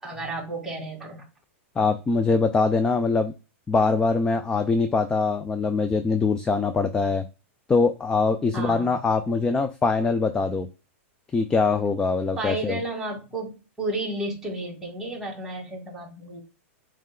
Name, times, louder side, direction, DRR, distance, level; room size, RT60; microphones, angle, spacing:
voice 1, 0.0-1.2 8.5-9.1 12.4-16.4, right 2 dB, 5° right, -3 dB, 2.2 m, -32 dB
voice 2, 1.8-3.3 3.7-7.2 7.7-10.7 11.3-12.8, left 4 dB, 10° left, 8 dB, 0.4 m, -23 dB
7.2 x 3.3 x 2.3 m, 0.31 s
hypercardioid pair, 140°, 7 cm